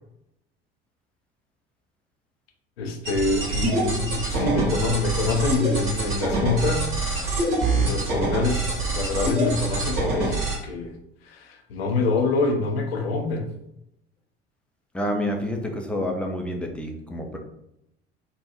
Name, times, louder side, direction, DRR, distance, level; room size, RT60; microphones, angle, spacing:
voice 1, 2.8-6.9 7.3-8.7 8.9-10.9 11.3-13.5, left 3 dB, 70° left, 3 dB, 0.6 m, -26 dB
sound 1, 3.1-10.5, right 2 dB, 65° right, 1.5 m, -25 dB
voice 2, 14.9-17.4, left 1 dB, 5° left, 2 dB, 0.5 m, -28 dB
3.4 x 2.2 x 2.9 m, 0.82 s
figure-of-eight pair, 65°, 31 cm